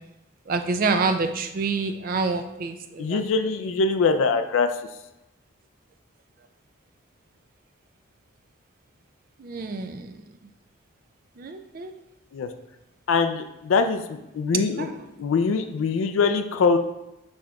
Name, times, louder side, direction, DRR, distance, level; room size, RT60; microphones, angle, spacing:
voice 1, 0.5-3.2 9.4-10.3 11.4-11.9 14.5-14.9, right 4 dB, 45° right, 7 dB, 0.3 m, -27 dB
voice 2, 3.0-4.7 12.3-12.5 13.1-14.0 14.3-14.9 15.2-16.8, left 4 dB, 80° left, 8 dB, 0.3 m, -22 dB
6.2 x 3.7 x 2.3 m, 0.92 s
head